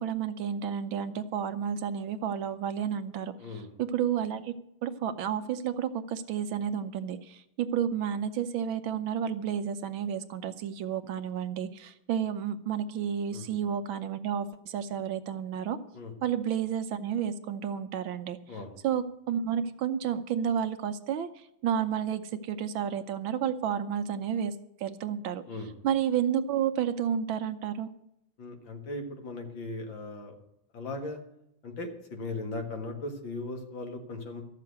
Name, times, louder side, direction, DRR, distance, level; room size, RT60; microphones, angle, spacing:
voice 1, 0.0-3.3 3.8-4.5 4.8-15.8 16.2-18.4 18.8-24.5 24.8-25.4 25.8-27.9, right 8 dB, 75° right, 10 dB, 1.4 m, -31 dB
voice 2, 3.4-3.7 13.3-13.5 15.9-16.1 18.5-18.7 25.5-25.7 28.4-30.3 30.7-31.2 31.6-34.4, left 2 dB, 60° left, 4 dB, 2.5 m, -38 dB
13.5 x 6.7 x 9.2 m, 0.80 s
omnidirectional pair, 2.3 m